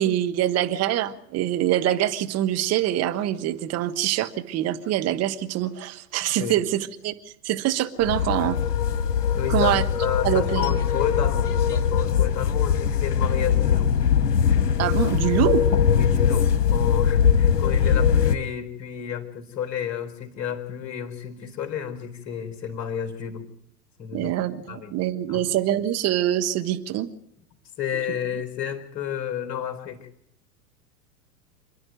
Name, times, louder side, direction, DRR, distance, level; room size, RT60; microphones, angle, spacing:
voice 1, 0.0-7.1 7.4-8.6 9.5-9.8 10.2-10.8 14.8-15.7 24.1-27.1, right 12 dB, 30° right, 8 dB, 1.5 m, -24 dB
sound 1, 8.0-18.3, left 7 dB, 70° left, 1.5 m, -21 dB
voice 2, 9.3-13.9 15.9-23.4 24.0-24.3 24.7-24.9 25.3-25.4 27.8-30.1, left 9 dB, 35° left, 6 dB, 4.2 m, -31 dB
27.5 x 10.5 x 9.3 m, 0.74 s
figure-of-eight pair, 100°, 48 cm